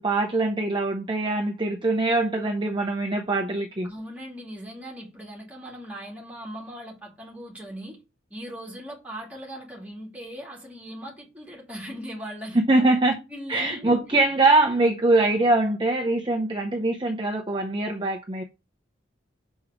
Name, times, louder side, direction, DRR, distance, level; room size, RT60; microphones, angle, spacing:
voice 1, 0.0-3.9 12.7-13.2 13.5-18.4, right 2 dB, 25° right, 0.9 m, -23 dB
voice 2, 3.8-8.0 8.3-12.7 13.3-14.0, equal, 10° right, 3.2 m, -39 dB
6.5 x 5.5 x 6.0 m
head